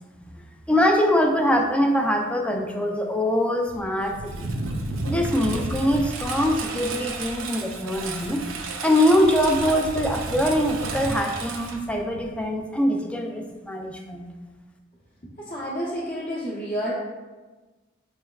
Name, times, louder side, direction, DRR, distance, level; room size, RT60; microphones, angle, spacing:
voice 1, 0.7-4.5 5.1-8.4 8.8-14.3, equal, 5° left, 2 dB, 0.3 m, -23 dB
Engine, 3.7-12.4, right 3 dB, 85° right, 0.5 m, -32 dB
voice 2, 15.4-16.9, equal, 40° left, -9 dB, 0.8 m, -30 dB
5.3 x 3.4 x 2.3 m, 1.2 s
head